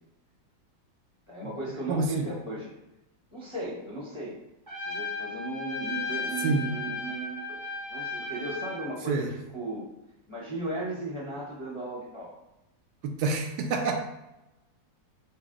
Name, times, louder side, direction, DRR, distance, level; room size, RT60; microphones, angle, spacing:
voice 1, 1.3-2.7 3.3-4.4 4.8-7.6 7.9-9.8 10.3-12.3, right 2 dB, 40° left, -7 dB, 0.4 m, -36 dB
voice 2, 1.9-2.3 6.4-6.7 9.1-9.3 13.0-14.0, right 3 dB, 75° right, 4 dB, 1.1 m, -27 dB
Trumpet, 4.7-8.9, left 4 dB, 40° right, 0.6 m, -35 dB
5.8 x 2.1 x 3.7 m, 0.95 s
omnidirectional pair, 2.0 m